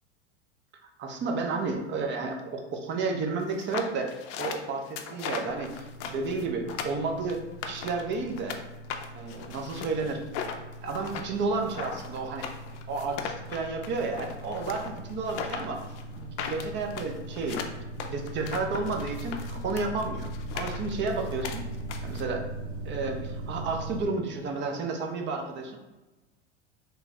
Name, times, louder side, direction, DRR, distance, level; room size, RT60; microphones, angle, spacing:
voice 1, 1.0-7.4 7.7-8.6 9.1-10.2 10.5-12.5 12.9-15.8 16.2-20.3 20.5-21.6 22.0-22.5 22.8-25.8, right 3 dB, 30° right, 3 dB, 0.6 m, -32 dB
sound 1, 3.5-8.6 8.9-22.2, left 6 dB, 55° left, 0.5 m, -38 dB
sound 2, 5.5-24.1, right 1 dB, 75° right, 1.1 m, -40 dB
3.4 x 2.2 x 4.1 m, 1.1 s
hypercardioid pair, 95°, 35 cm